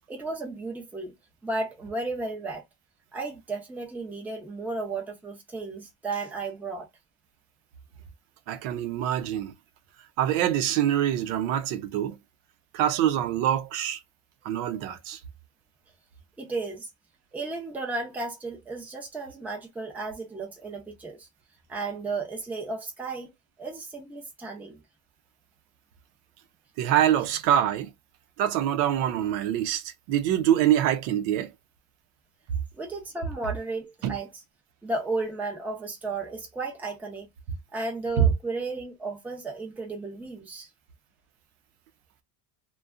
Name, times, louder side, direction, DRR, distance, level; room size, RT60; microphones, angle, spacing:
voice 1, 0.1-1.1 1.4-2.6 3.1-6.9 16.4-16.9 17.3-21.3 21.7-23.3 23.6-24.8 32.7-34.3 34.8-37.3 37.7-40.7, right 3 dB, 5° right, 0.5 m, -34 dB
voice 2, 8.5-9.5 10.2-12.2 12.7-14.0 14.4-15.2 26.8-27.9 28.4-31.5 34.0-34.1 38.2-38.3, right 11 dB, 85° right, 0.7 m, -25 dB
2.6 x 2.3 x 2.3 m
cardioid pair, 160°, 45 cm